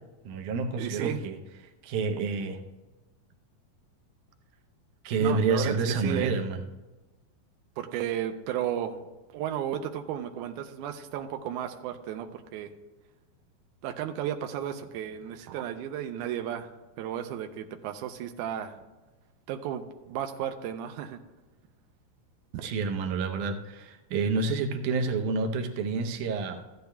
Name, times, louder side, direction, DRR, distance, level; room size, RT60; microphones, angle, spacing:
voice 1, 0.3-1.4 1.8-2.6 5.0-6.6 22.6-26.7, right 4 dB, 70° right, 4 dB, 2.0 m, -28 dB
voice 2, 0.8-1.2 5.2-6.3 7.8-9.0 9.3-12.7 13.8-16.7 17.0-18.8 19.5-21.2, right 10 dB, 90° right, 5 dB, 1.8 m, -34 dB
15.0 x 10.5 x 2.2 m, 1.1 s
omnidirectional pair, 4.1 m